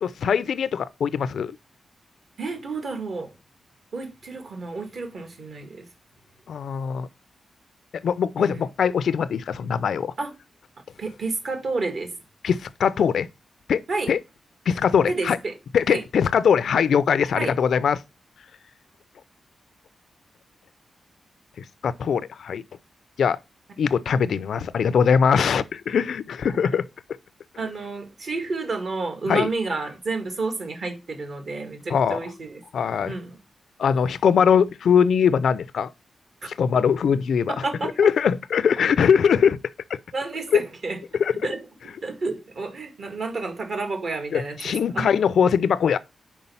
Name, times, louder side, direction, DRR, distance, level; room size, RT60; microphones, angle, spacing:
voice 1, 0.0-1.5 6.5-7.1 7.9-10.1 12.4-13.3 13.7-13.8 14.1-14.2 14.7-15.4 15.7-18.0 21.6-22.6 23.2-23.4 23.8-26.9 29.3-29.5 31.9-32.2 32.7-33.1 33.8-35.9 36.4-37.6 37.8-39.6 39.9-40.0 40.5-40.6 41.2-41.3 44.3-46.0, left 7 dB, 75° left, 0.4 m, -21 dB
voice 2, 2.4-3.3 3.9-5.8 8.4-8.6 10.2-10.3 11.0-12.1 13.9-14.1 15.1-15.5 15.9-16.0 17.3-17.5 27.6-32.6 33.0-33.4 37.5-38.0 40.1-41.0 41.4-41.6 42.0-45.1, right 3 dB, 55° right, 1.8 m, -30 dB
5.3 x 4.6 x 5.5 m
wide cardioid pair, 165°, 0 cm